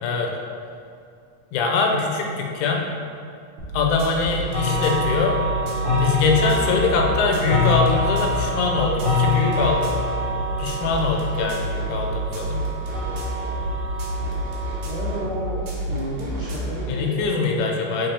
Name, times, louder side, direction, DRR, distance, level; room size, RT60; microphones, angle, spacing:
voice 1, 1.5-2.8 3.7-5.4 5.9-9.9 10.6-12.6 16.9-18.1, left 4 dB, 85° left, 1 dB, 2.0 m, -23 dB
sound 1, 3.6-16.9, right 1 dB, 70° right, 1.5 m, -29 dB
sound 2, 4.5-15.2, left 2 dB, 55° left, 2.3 m, -26 dB
voice 2, 14.9-17.7, equal, 50° right, -10 dB, 1.4 m, -31 dB
5.4 x 3.3 x 2.8 m, 2.4 s
omnidirectional pair, 3.3 m